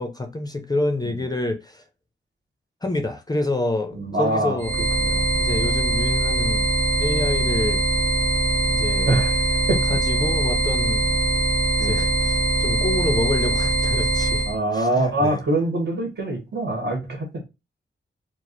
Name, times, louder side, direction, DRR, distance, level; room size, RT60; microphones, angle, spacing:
voice 1, 0.0-1.8 2.8-4.7 5.3-6.7 7.0-7.8 8.7-9.2 9.9-11.2 11.8-14.4 14.7-15.4, left 2 dB, 20° left, 0.5 m, -27 dB
voice 2, 3.9-4.6 5.0-5.2 9.1-9.4 9.7-9.8 11.8-12.0 14.5-17.4, right 1 dB, 60° right, 1.7 m, -24 dB
sound 1, 4.6-14.6, right 2 dB, 45° right, 0.9 m, -22 dB
4.7 x 2.0 x 4.2 m
wide cardioid pair, 175°, 20 cm